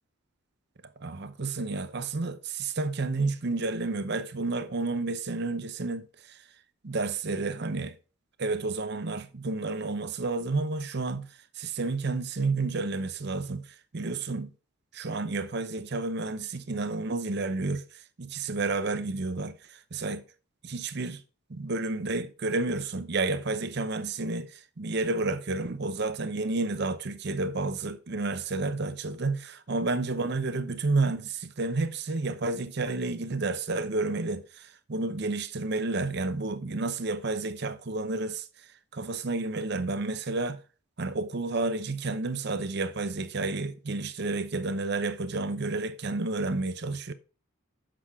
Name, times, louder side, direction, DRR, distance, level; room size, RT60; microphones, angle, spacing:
voice 1, 1.0-6.4 6.8-8.0 8.4-14.5 14.9-20.2 20.6-21.2 21.5-40.6 41.0-47.1, right 3 dB, 50° right, 0.7 m, -31 dB
7.7 x 6.4 x 3.6 m
head